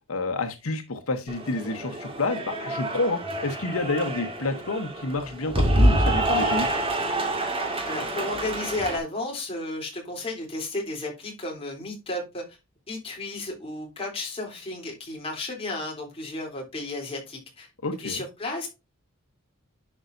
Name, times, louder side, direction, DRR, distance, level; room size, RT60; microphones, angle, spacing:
voice 1, 0.1-6.7 17.8-18.2, left 2 dB, 85° left, 1.0 m, -29 dB
Cheering / Applause, 1.3-9.0, right 1 dB, 25° right, 2.0 m, -26 dB
voice 2, 7.8-12.6 12.9-17.7 18.0-18.7, left 2 dB, 25° left, 3.3 m, -33 dB
11.0 x 5.3 x 2.6 m
head